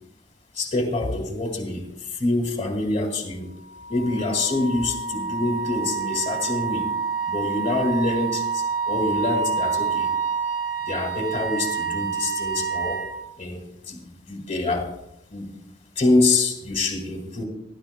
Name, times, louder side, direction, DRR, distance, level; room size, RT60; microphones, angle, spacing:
voice 1, 0.6-3.5 3.9-6.9 7.3-10.1 10.8-13.0 13.4-14.9 15.3-15.7 16.0-17.4, left 2 dB, 30° left, 1 dB, 2.1 m, -26 dB
Wind instrument woodwind instrument, 3.7-13.1, right 6 dB, 45° right, 1.9 m, -28 dB
22.5 x 12.0 x 2.2 m, 0.81 s
head